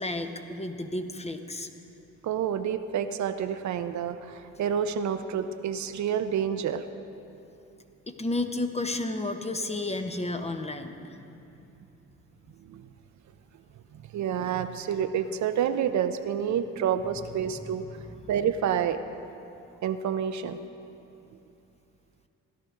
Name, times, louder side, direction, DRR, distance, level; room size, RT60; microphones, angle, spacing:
voice 1, 0.0-1.7 8.1-11.3 17.4-17.8 18.0-18.3, left 2 dB, 20° left, 6 dB, 0.9 m, -32 dB
voice 2, 2.2-6.8 12.7-12.9 13.9-17.8 18.3-19.0 19.8-20.7, right 8 dB, 65° right, 9 dB, 0.6 m, -28 dB
16.5 x 11.5 x 3.7 m, 2.8 s
supercardioid pair, 70°, 31 cm